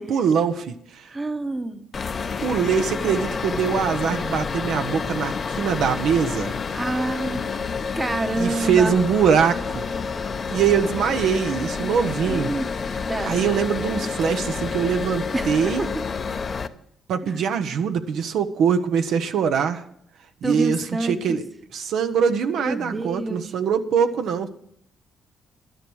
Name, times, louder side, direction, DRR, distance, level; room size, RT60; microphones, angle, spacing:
voice 1, 0.0-1.1 2.4-6.6 8.4-10.0 10.5-12.5 13.2-15.8 17.1-19.8 20.4-21.4 21.7-24.5, right 7 dB, 75° right, 7 dB, 0.9 m, -23 dB
voice 2, 1.1-1.8 6.7-7.4 8.0-9.0 12.2-12.7 13.1-13.4 15.3-16.0 17.2-17.4 20.4-21.4 22.6-23.5, right 2 dB, 20° right, 9 dB, 1.0 m, -28 dB
sound 1, 1.9-16.7, left 5 dB, 40° left, 0.8 m, -29 dB
12.0 x 10.5 x 6.3 m, 0.71 s
cardioid pair, 90°, 0 cm